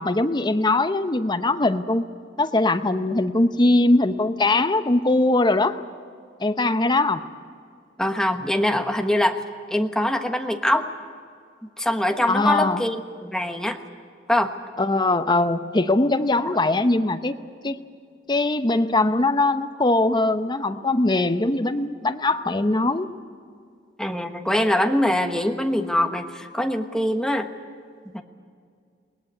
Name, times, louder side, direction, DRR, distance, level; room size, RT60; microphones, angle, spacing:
voice 1, 0.0-2.1 2.4-5.8 6.4-7.2 12.3-12.8 14.8-17.3 17.6-17.8 18.3-23.1, left 2 dB, 25° left, 10 dB, 0.9 m, -21 dB
voice 2, 8.0-9.4 9.7-10.9 11.8-13.8 14.3-14.5 24.0-27.5 28.0-28.2, left 1 dB, 5° left, 5 dB, 1.3 m, -23 dB
20.5 x 19.0 x 9.9 m, 2.2 s
head